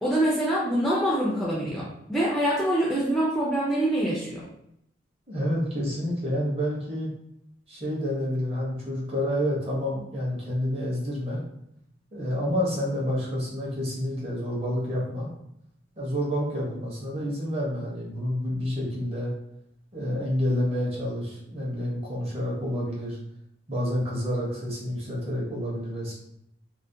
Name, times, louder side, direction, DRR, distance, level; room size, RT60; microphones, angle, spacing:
voice 1, 0.0-4.5, right 1 dB, ahead, -7 dB, 0.3 m, -25 dB
voice 2, 5.3-7.1 7.7-11.4 12.1-15.3 16.0-19.3 19.9-23.2 23.7-26.1, equal, 30° right, -4 dB, 0.7 m, -29 dB
2.4 x 2.1 x 2.6 m, 0.77 s
head